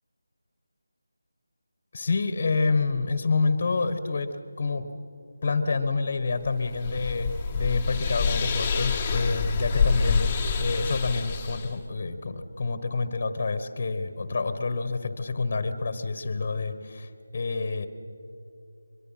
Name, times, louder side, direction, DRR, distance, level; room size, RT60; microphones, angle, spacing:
voice 1, 1.9-4.9 5.4-17.9, left 3 dB, 40° left, 11 dB, 1.3 m, -28 dB
sound 1, 6.4-11.8, left 5 dB, 15° left, 1.4 m, -27 dB
23.5 x 22.5 x 5.8 m, 2.8 s
figure-of-eight pair, 165°, 0 cm